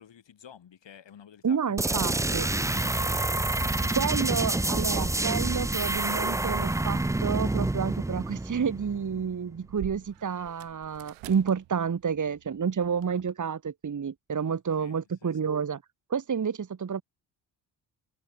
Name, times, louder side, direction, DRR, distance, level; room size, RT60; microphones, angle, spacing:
voice 1, 0.0-4.6 14.5-15.4, left 8 dB, 65° left, 6.7 m, -49 dB
voice 2, 1.4-2.5 4.0-15.8 16.1-17.0, right 6 dB, 40° right, 1.6 m, -30 dB
sound 1, 1.8-9.3, right 2 dB, 5° right, 0.5 m, -28 dB
sound 2, 9.0-13.3, right 19 dB, 90° right, 5.0 m, -51 dB
supercardioid pair, 45°, 48 cm